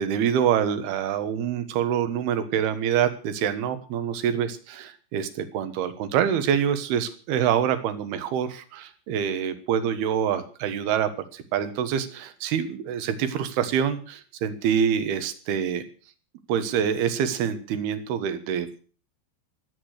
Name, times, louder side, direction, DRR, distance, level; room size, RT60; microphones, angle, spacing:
voice 1, 0.0-15.8 16.5-18.8, right 8 dB, 65° right, 11 dB, 2.8 m, -26 dB
22.5 x 8.6 x 6.5 m, 0.40 s
omnidirectional pair, 5.8 m